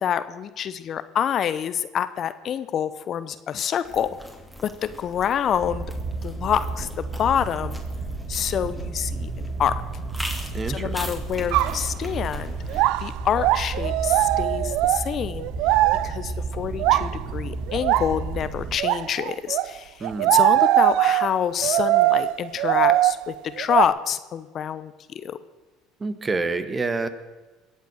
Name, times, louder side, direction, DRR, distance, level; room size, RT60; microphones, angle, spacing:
voice 1, 0.0-4.1 4.6-5.9 6.2-7.8 8.3-9.8 10.2-15.5 16.0-24.9 25.2-25.4, left 9 dB, 50° left, 13 dB, 0.8 m, -27 dB
sound 1, 3.8-12.9, equal, 5° right, 2.7 m, -41 dB
sound 2, 5.6-18.8, right 3 dB, 50° right, 1.7 m, -32 dB
voice 2, 10.5-11.1 20.0-20.4 26.0-27.1, right 3 dB, 25° right, 11 dB, 1.5 m, -28 dB
sound 3, 11.5-11.9 12.6-16.2 16.8-17.2 17.7-18.2 18.8-19.7 20.0-23.9, right 16 dB, 70° right, 0.4 m, -21 dB
22.0 x 8.1 x 6.4 m, 1.2 s
hypercardioid pair, 70°, 0 cm